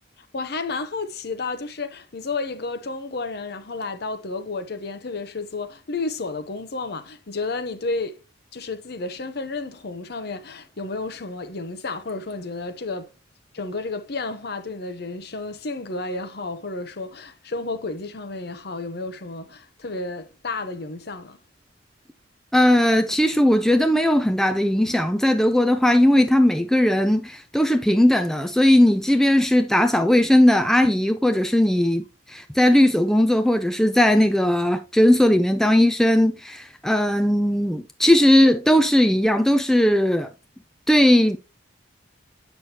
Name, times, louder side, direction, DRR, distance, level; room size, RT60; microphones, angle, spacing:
voice 1, 0.3-8.2 8.5-13.1 13.5-21.4, left 3 dB, 50° left, 0.8 m, -31 dB
voice 2, 22.5-40.3 40.9-41.4, left 1 dB, ahead, 0.4 m, -18 dB
8.2 x 6.2 x 2.8 m
head